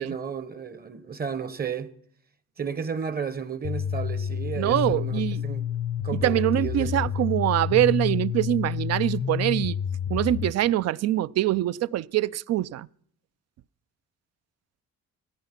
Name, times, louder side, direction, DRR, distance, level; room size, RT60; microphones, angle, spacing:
voice 1, 0.0-1.9 2.6-5.7 6.0-7.3, right 6 dB, 30° right, 0.9 m, -33 dB
sound 1, 3.6-10.5, left 8 dB, 50° left, 0.6 m, -29 dB
voice 2, 4.6-5.4 6.2-9.8 10.1-12.9, right 14 dB, 60° right, 0.4 m, -24 dB
14.5 x 9.8 x 5.8 m
cardioid pair, 90°, 30 cm